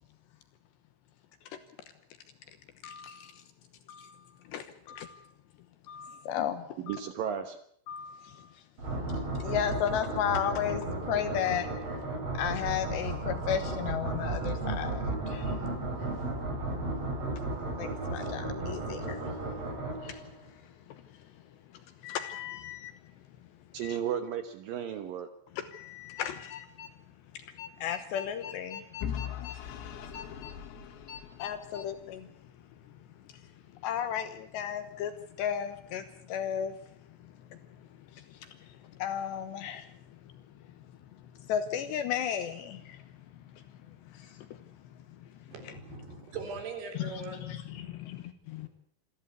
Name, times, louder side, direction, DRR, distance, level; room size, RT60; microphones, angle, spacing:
voice 1, 2.8-3.3 3.9-4.2 4.5-5.2 5.9-7.0 7.9-8.5 9.4-12.0 12.3-15.6 17.6-19.3 20.0-20.2 20.9-21.0 22.0-22.9 23.8-24.0 25.6-26.9 27.6-29.6 30.1-30.6 31.1-32.3 33.8-35.1 35.4-36.7 37.2-37.6 38.1-38.6 39.0-39.9 41.4-43.0 43.6-44.6 47.0-48.7, left 9 dB, 70° left, 2.9 m, -35 dB
voice 2, 6.8-7.6 23.7-25.3, right 9 dB, 85° right, 1.9 m, -34 dB
sound 1, 8.8-20.5, right 2 dB, 30° right, 4.6 m, -34 dB
Vehicle / Engine, 29.0-32.0, left 8 dB, 90° left, 4.7 m, -40 dB
voice 3, 45.5-47.5 48.6-48.7, right 4 dB, 55° right, 5.6 m, -41 dB
27.0 x 14.0 x 8.3 m
omnidirectional pair, 5.9 m